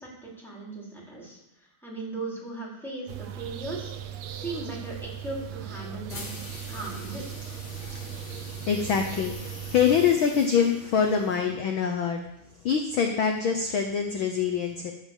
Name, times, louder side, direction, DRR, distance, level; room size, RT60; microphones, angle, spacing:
voice 1, 0.0-3.9 4.3-6.3 6.7-7.2, right 2 dB, ahead, -4 dB, 3.8 m, -38 dB
sound 1, 3.1-10.1, right 10 dB, 70° right, 1.9 m, -38 dB
sound 2, 6.1-11.7, left 2 dB, 30° left, 1.7 m, -43 dB
voice 2, 8.7-12.2 12.6-14.9, left 7 dB, 80° left, 4 dB, 1.1 m, -25 dB
13.5 x 5.8 x 7.3 m, 0.89 s
omnidirectional pair, 3.4 m